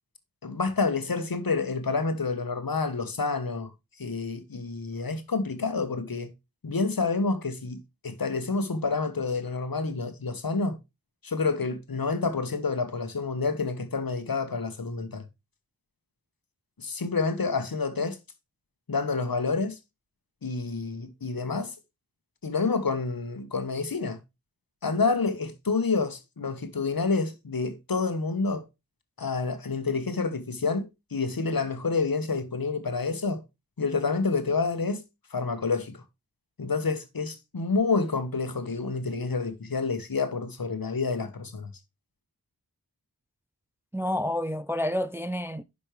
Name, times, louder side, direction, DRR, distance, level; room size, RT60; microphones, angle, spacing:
voice 1, 0.4-3.7 4.0-6.3 6.6-10.7 11.2-15.2 16.8-18.2 18.9-19.8 20.4-21.7 22.4-24.2 24.8-28.6 29.2-33.4 33.8-35.0 35.3-36.0 36.6-41.7, left 4 dB, 65° left, 1.2 m, -28 dB
voice 2, 43.9-45.6, left 1 dB, 5° right, 0.3 m, -29 dB
10.5 x 5.4 x 3.2 m
wide cardioid pair, 55°, 37 cm